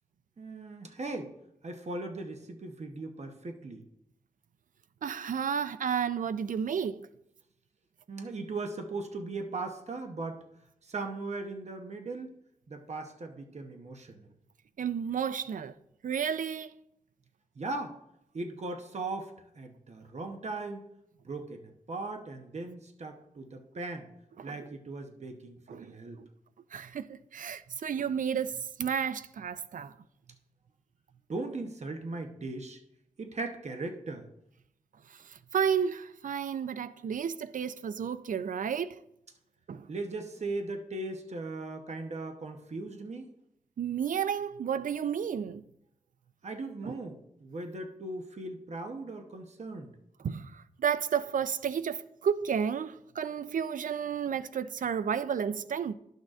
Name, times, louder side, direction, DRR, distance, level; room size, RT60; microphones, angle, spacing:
voice 1, 0.4-1.3 1.6-3.8 8.1-10.4 10.9-12.4 12.7-14.3 17.6-18.0 18.3-20.9 21.2-24.1 24.4-26.2 31.3-32.8 33.2-34.3 39.9-43.3 46.4-49.9, right 3 dB, 50° right, 0.9 m, -38 dB
voice 2, 5.0-7.1 14.8-15.7 16.0-16.7 24.4-24.7 25.7-26.3 26.7-29.9 35.3-39.0 39.7-39.9 43.8-45.6 46.8-46.9 50.2-55.9, right 7 dB, 70° right, 0.4 m, -32 dB
11.5 x 6.4 x 2.4 m
wide cardioid pair, 75°, 14 cm